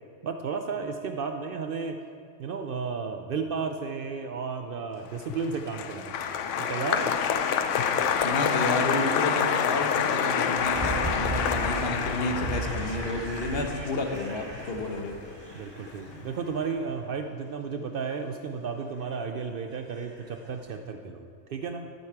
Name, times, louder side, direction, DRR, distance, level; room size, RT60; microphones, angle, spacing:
voice 1, 0.2-2.0 2.4-7.2 10.9-11.2 15.5-21.9, right 5 dB, 60° right, 6 dB, 0.6 m, -33 dB
Applause, 5.2-15.5 15.8-16.4, left 7 dB, 85° left, 0.9 m, -28 dB
voice 2, 8.2-15.2, left 2 dB, 55° left, 4 dB, 1.1 m, -31 dB
sound 1, 10.5-16.9 19.0-19.5 19.9-20.5 20.7-20.8, right 2 dB, 25° right, 0.9 m, -36 dB
11.0 x 8.2 x 4.6 m, 2.3 s
omnidirectional pair, 1.2 m